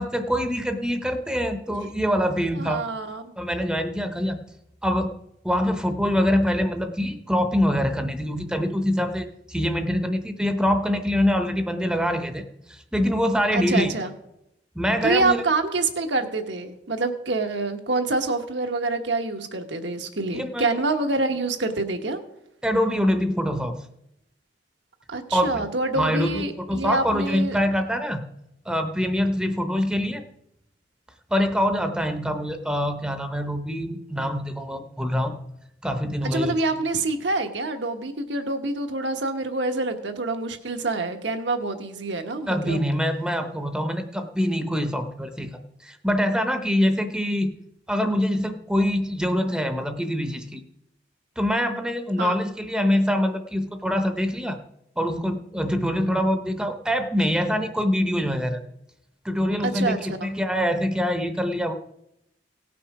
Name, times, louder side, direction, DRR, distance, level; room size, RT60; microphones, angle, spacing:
voice 1, 0.0-2.8 3.4-4.4 4.8-5.1 5.4-13.9 14.7-15.4 20.3-20.8 22.6-23.8 25.3-25.7 26.0-28.2 28.7-30.2 31.3-35.4 35.8-36.6 42.5-45.5 45.8-47.5 47.9-50.6 51.4-54.6 55.0-58.6 59.2-61.8, equal, 5° right, 7 dB, 0.7 m, -24 dB
voice 2, 2.5-3.3 13.5-14.1 15.0-22.2 25.1-27.6 36.2-42.8 52.2-52.3 59.6-60.3, right 3 dB, 75° right, 6 dB, 1.2 m, -26 dB
17.5 x 5.9 x 4.8 m, 0.82 s
head